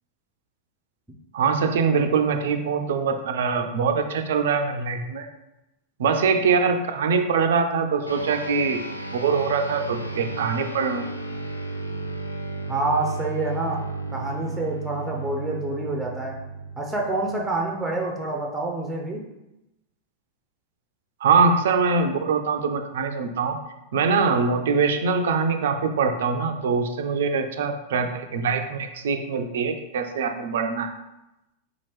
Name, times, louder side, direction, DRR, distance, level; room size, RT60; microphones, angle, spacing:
voice 1, 1.3-5.2 6.0-8.8 9.1-11.0 21.2-23.6 23.9-30.9, right 5 dB, 60° right, 6 dB, 0.4 m, -23 dB
sound 1, 8.1-17.8, right 2 dB, 85° left, 0.4 m, -34 dB
voice 2, 12.7-13.8 14.1-16.4 16.8-19.2, right 2 dB, 10° right, 0 dB, 0.6 m, -27 dB
4.0 x 2.9 x 3.1 m, 0.93 s
figure-of-eight pair, 90°, 0 cm